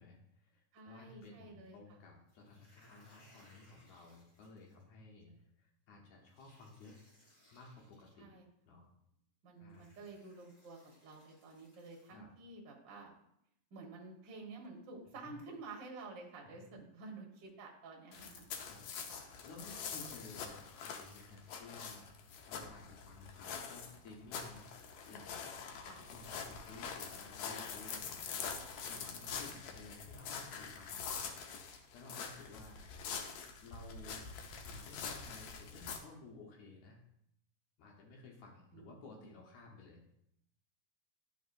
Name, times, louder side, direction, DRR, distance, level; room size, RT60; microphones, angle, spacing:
voice 1, 0.0-7.0 7.5-8.3 8.7-8.9 9.6-9.9 12.1-12.3 15.1-15.3 16.7-16.8 18.6-18.9 19.4-28.2 28.5-32.8 33.6-34.2 34.6-37.0 37.8-40.0, left 3 dB, 70° left, -1 dB, 2.2 m, -55 dB
voice 2, 0.7-2.0 8.2-8.4 9.4-13.1 13.7-18.4 19.1-19.3 25.8-26.1 29.0-29.1 38.7-39.3, right 3 dB, 50° right, -1 dB, 1.5 m, -51 dB
sound 1, 2.3-4.8 6.3-8.1 9.1-9.2 9.7-12.1, left 1 dB, 30° left, 3.0 m, -67 dB
sound 2, 18.1-36.0, left 6 dB, 85° left, 1.4 m, -45 dB
11.5 x 4.6 x 2.5 m, 0.75 s
omnidirectional pair, 3.6 m